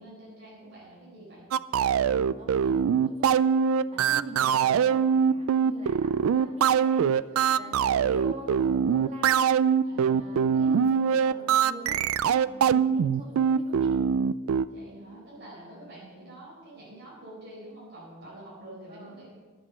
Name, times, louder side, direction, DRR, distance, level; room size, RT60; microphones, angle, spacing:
voice 1, 0.0-1.5 6.2-6.8 7.3-7.9 9.8-10.3 12.4-12.8 14.6-19.3, right 1 dB, 50° right, -7 dB, 4.6 m, -47 dB
sound 1, 1.5-14.7, right 7 dB, 85° right, 0.3 m, -23 dB
voice 2, 2.0-3.4 3.9-7.1 7.5-9.6 9.9-13.9 18.9-19.3, right 1 dB, 30° right, -2 dB, 2.1 m, -44 dB
11.5 x 7.7 x 6.8 m, 1.4 s
head